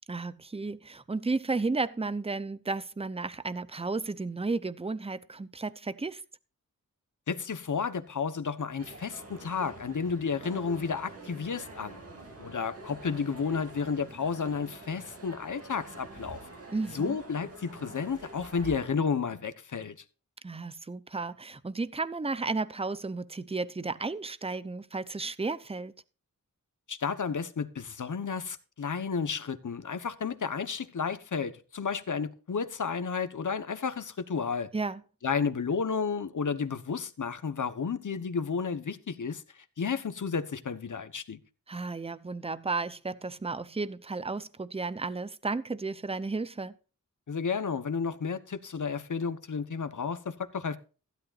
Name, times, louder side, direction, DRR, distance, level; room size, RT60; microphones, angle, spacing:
voice 1, 0.1-6.2 16.7-17.2 20.4-25.9 34.7-35.0 41.7-46.8, right 3 dB, 20° right, 0.7 m, -33 dB
voice 2, 7.3-12.0 12.4-16.4 16.9-19.9 26.9-34.7 35.2-41.4 47.3-50.8, left 5 dB, 65° left, 1.2 m, -32 dB
sound 1, 8.8-18.9, right 2 dB, 45° right, 2.8 m, -47 dB
15.5 x 11.5 x 2.6 m
wide cardioid pair, 105°, 33 cm